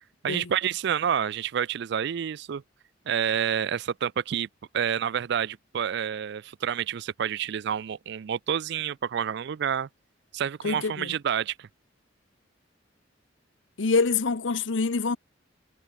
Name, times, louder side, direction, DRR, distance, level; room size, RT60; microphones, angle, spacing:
voice 1, 0.2-2.6 3.1-4.5 4.7-9.9 10.3-11.7, right 8 dB, 60° right, 0.4 m, -28 dB
voice 2, 10.6-11.1 13.8-15.2, left 4 dB, 75° left, 0.8 m, -25 dB
head